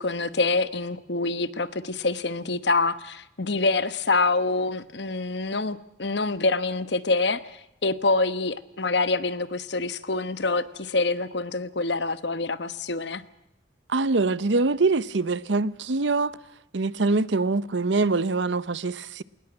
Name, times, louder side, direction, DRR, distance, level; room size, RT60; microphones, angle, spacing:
voice 1, 0.0-7.4 7.8-13.2, left 3 dB, 70° left, 1.1 m, -26 dB
voice 2, 13.9-16.3 16.7-19.2, right 3 dB, 80° right, 0.8 m, -24 dB
21.0 x 19.5 x 8.8 m
head